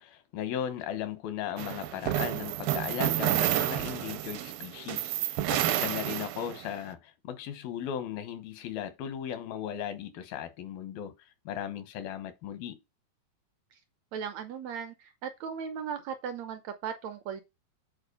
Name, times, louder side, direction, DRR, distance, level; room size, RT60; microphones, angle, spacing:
voice 1, 0.0-11.1 11.5-12.8, left 10 dB, 90° left, 3.1 m, -37 dB
sound 1, 1.6-6.7, right 14 dB, 90° right, 2.5 m, -30 dB
voice 2, 14.1-17.4, right 7 dB, 70° right, 1.7 m, -37 dB
7.9 x 4.6 x 6.7 m
omnidirectional pair, 4.1 m